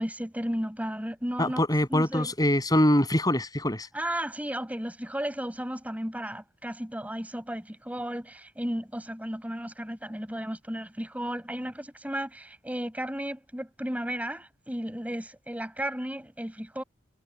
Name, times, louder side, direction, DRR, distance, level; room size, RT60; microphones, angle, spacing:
voice 1, 0.0-1.6 1.9-2.3 3.9-16.8, equal, 10° right, 5.6 m, -34 dB
voice 2, 1.4-3.9, left 1 dB, 20° left, 7.4 m, -24 dB
head